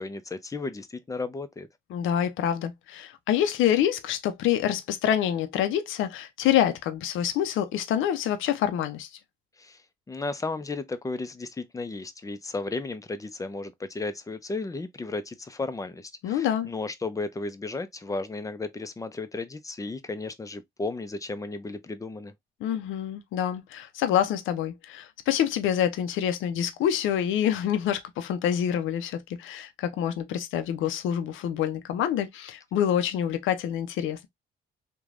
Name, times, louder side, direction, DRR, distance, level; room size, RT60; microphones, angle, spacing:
voice 1, 0.0-1.7 9.6-9.8 10.1-22.3, left 3 dB, 15° left, 0.5 m, -34 dB
voice 2, 1.9-9.1 16.2-16.7 22.6-34.3, left 10 dB, 80° left, 0.5 m, -26 dB
3.1 x 2.2 x 2.4 m
cardioid pair, 90°, 20 cm